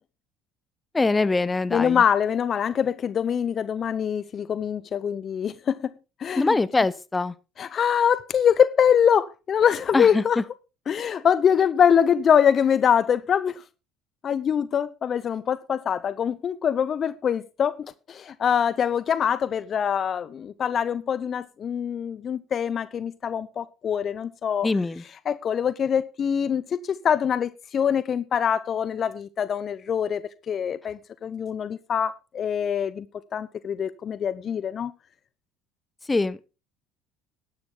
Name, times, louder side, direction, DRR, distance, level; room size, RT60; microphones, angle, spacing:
voice 1, 0.9-2.0 6.4-7.3 9.9-10.4 24.6-25.0 36.1-36.5, left 3 dB, 20° left, 0.9 m, -23 dB
voice 2, 1.7-5.9 6.2-6.5 7.6-10.4 10.9-13.6 14.2-24.7 25.3-33.1 33.3-34.9, left 8 dB, 45° left, 0.6 m, -24 dB
11.5 x 11.0 x 3.8 m
hypercardioid pair, 65°, 0 cm